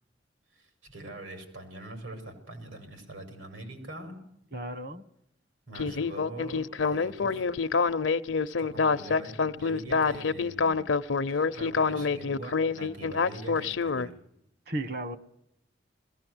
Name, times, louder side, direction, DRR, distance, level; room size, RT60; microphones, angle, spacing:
voice 1, 0.6-4.2 5.7-7.8 8.6-10.8 11.3-14.2, right 1 dB, 85° right, 6 dB, 5.5 m, -43 dB
voice 2, 4.5-5.0 14.7-15.2, right 1 dB, 55° right, 14 dB, 1.3 m, -34 dB
Speech synthesizer, 5.7-14.1, left 4 dB, 80° left, 0.7 m, -27 dB
21.5 x 16.0 x 7.9 m, 0.79 s
head